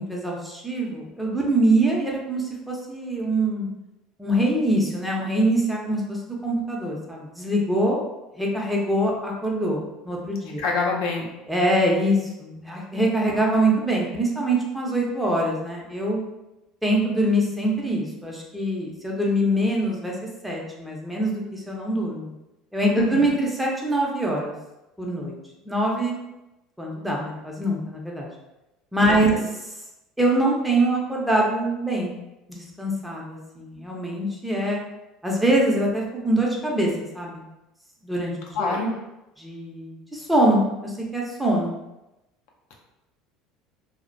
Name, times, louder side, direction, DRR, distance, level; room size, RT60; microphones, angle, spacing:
voice 1, 0.0-3.7 4.2-8.0 8.4-10.6 11.5-16.2 16.8-20.1 20.4-22.3 22.7-24.5 25.0-25.3 25.6-26.2 26.8-28.3 28.9-29.3 30.2-32.1 32.5-34.8 35.2-36.9 37.1-37.4 38.0-38.7 39.4-41.7, right 1 dB, 5° right, -3 dB, 0.6 m, -24 dB
voice 2, 10.6-11.3 23.0-23.2 29.1-29.4 38.5-38.9, left 3 dB, 75° left, 0 dB, 0.5 m, -25 dB
2.4 x 2.1 x 2.5 m, 0.96 s
hypercardioid pair, 85°, 0 cm